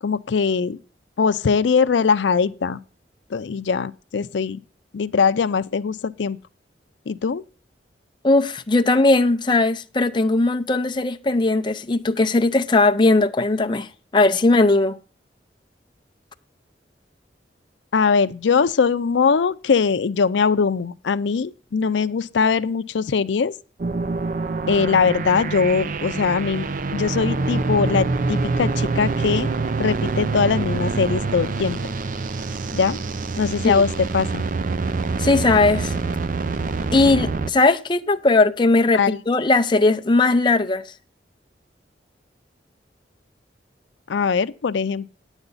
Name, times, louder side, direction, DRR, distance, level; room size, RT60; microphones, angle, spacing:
voice 1, 0.0-0.8 1.2-2.8 3.3-4.6 4.9-6.4 7.1-7.4 17.9-23.5 24.7-26.7 26.9-29.5 29.8-31.8 32.7-33.0 33.4-34.4 38.9-39.2 44.1-45.1, left 5 dB, 85° left, 0.5 m, -21 dB
voice 2, 8.2-15.0 33.6-33.8 35.2-35.9 36.9-40.9, left 2 dB, 25° left, 0.6 m, -18 dB
sound 1, 23.8-37.5, right 3 dB, 50° right, 0.5 m, -25 dB
9.8 x 8.1 x 4.0 m
head